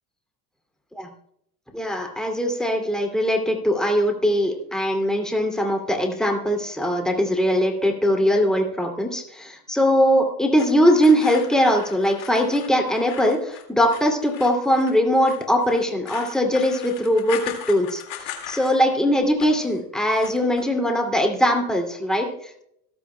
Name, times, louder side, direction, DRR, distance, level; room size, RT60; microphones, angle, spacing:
voice 1, 1.7-17.4 17.7-22.6, equal, ahead, 3 dB, 2.5 m, -21 dB
sound 1, 10.6-19.0 19.2-19.7 20.1-20.6, left 11 dB, 70° left, 2.2 m, -38 dB
25.5 x 8.5 x 2.2 m, 0.74 s
hypercardioid pair, 75°, 48 cm